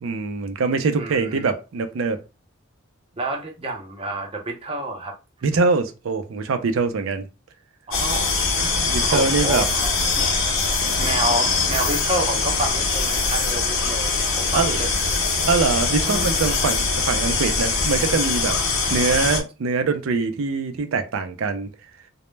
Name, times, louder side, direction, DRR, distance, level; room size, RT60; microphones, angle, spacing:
voice 1, 0.0-2.2 5.4-7.3 8.6-9.7 14.5-14.8 15.4-18.6 18.9-21.7, right 4 dB, 80° right, 0.4 m, -23 dB
voice 2, 1.0-1.5 3.2-5.1 7.9-10.3 10.8-15.0 16.0-16.4, right 1 dB, 30° right, 0.6 m, -29 dB
sound 1, 7.9-19.4, left 4 dB, 80° left, 0.6 m, -22 dB
2.1 x 2.0 x 3.1 m
head